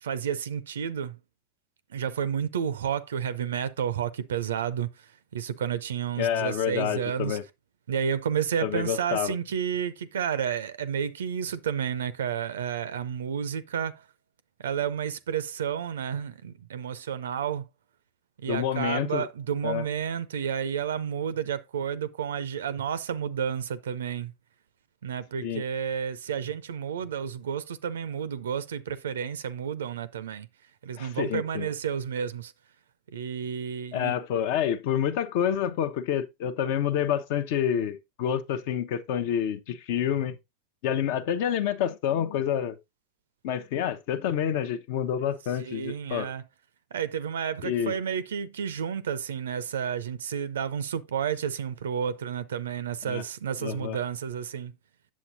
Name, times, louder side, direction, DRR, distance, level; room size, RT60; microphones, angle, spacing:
voice 1, 0.0-1.2 1.9-7.4 7.9-14.1 14.6-17.6 18.4-24.3 25.0-30.5 30.8-32.5 33.1-34.2 45.6-46.4 46.9-54.7, right 8 dB, 70° right, 0.4 m, -31 dB
voice 2, 6.2-7.4 8.6-9.3 18.5-19.2 19.6-19.8 25.4-25.6 31.0-31.7 33.9-40.4 40.8-42.8 43.4-46.3 47.6-47.9 53.0-53.2 53.6-54.0, left 9 dB, 55° left, 0.7 m, -28 dB
8.3 x 7.4 x 2.6 m
figure-of-eight pair, 85°, 0 cm